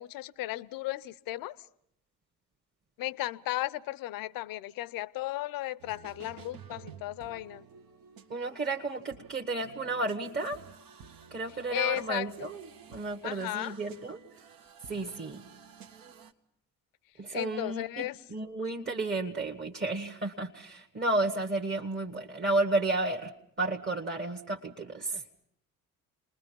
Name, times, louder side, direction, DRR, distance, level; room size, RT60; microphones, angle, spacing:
voice 1, 0.0-1.5 3.0-7.6 11.7-12.5 13.2-13.7 17.3-18.2, left 16 dB, 50° left, 20 dB, 0.8 m, -35 dB
sound 1, 5.8-16.3, right 6 dB, 50° right, 1.5 m, -52 dB
voice 2, 8.3-10.6 11.3-14.2 14.9-15.4 17.2-25.2, right 2 dB, 25° right, 2 dB, 1.6 m, -32 dB
29.0 x 20.5 x 5.5 m, 0.74 s
figure-of-eight pair, 55°, 44 cm